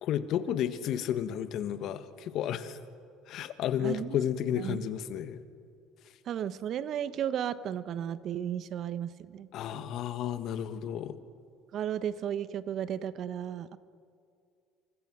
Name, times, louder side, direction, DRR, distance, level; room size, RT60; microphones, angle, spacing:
voice 1, 0.0-2.8 3.3-5.4 9.5-11.2, left 10 dB, 60° left, 11 dB, 1.5 m, -32 dB
voice 2, 3.8-4.2 4.6-4.8 6.3-9.5 11.7-13.8, right 9 dB, 55° right, 14 dB, 1.1 m, -34 dB
28.5 x 24.5 x 6.2 m, 2.4 s
hypercardioid pair, 70°, 0 cm